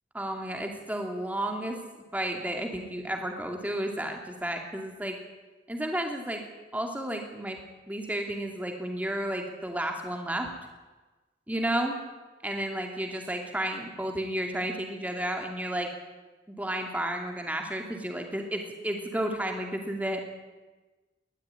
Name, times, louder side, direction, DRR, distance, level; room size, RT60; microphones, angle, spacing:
voice 1, 0.1-1.8 2.1-5.2 5.7-6.4 6.7-7.6 7.9-10.5 11.5-12.0 12.4-15.9 16.5-20.2, right 1 dB, 10° right, 3 dB, 2.6 m, -32 dB
20.0 x 13.0 x 9.8 m, 1.2 s
head